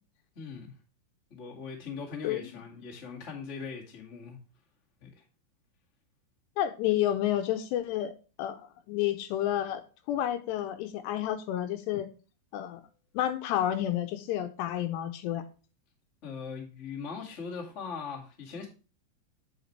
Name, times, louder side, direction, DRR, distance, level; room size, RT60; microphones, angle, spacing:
voice 1, 0.3-0.7 1.3-4.4 5.0-5.2 16.2-18.7, left 5 dB, 45° left, 0.9 m, -40 dB
voice 2, 6.6-8.1 8.4-8.6 8.9-9.8 10.1-12.1 12.5-12.8 13.1-15.4, left 12 dB, 80° left, 2.7 m, -30 dB
9.1 x 6.0 x 3.1 m
omnidirectional pair, 5.2 m